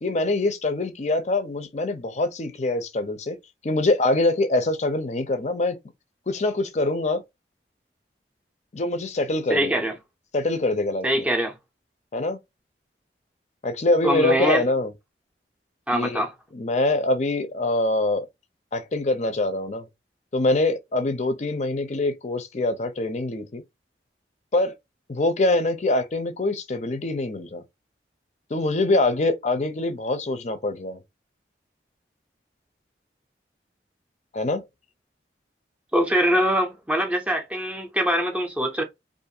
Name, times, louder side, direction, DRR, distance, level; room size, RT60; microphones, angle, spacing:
voice 1, 0.0-3.4 3.6-5.8 6.3-7.2 8.7-9.8 10.3-11.1 12.1-12.4 13.6-14.9 15.9-16.2 16.5-18.3 18.7-19.9 20.3-23.6 24.5-24.7 25.1-27.6 28.5-31.0 34.3-34.6, left 2 dB, 40° left, 0.5 m, -24 dB
voice 2, 9.5-10.0 11.0-11.6 14.0-14.6 15.9-16.3 35.9-38.8, equal, 10° right, 0.5 m, -23 dB
2.5 x 2.4 x 2.7 m
head